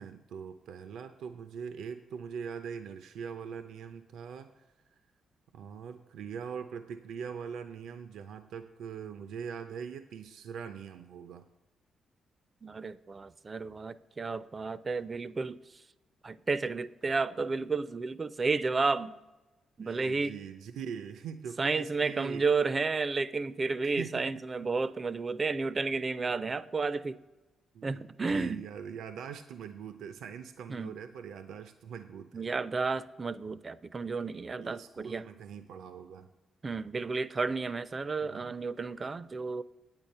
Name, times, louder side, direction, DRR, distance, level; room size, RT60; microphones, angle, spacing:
voice 1, 0.0-4.6 5.5-11.5 19.8-22.5 23.8-24.2 26.5-26.6 27.7-32.5 34.5-36.3 38.2-38.6, right 7 dB, 85° right, 9 dB, 0.5 m, -42 dB
voice 2, 12.6-15.6 16.2-19.2 19.8-20.4 21.6-27.2 27.8-28.6 30.7-31.0 32.3-35.2 36.6-39.6, right 4 dB, 30° right, 16 dB, 0.4 m, -32 dB
9.0 x 8.9 x 5.4 m, 1.1 s
cardioid pair, 125°, 0 cm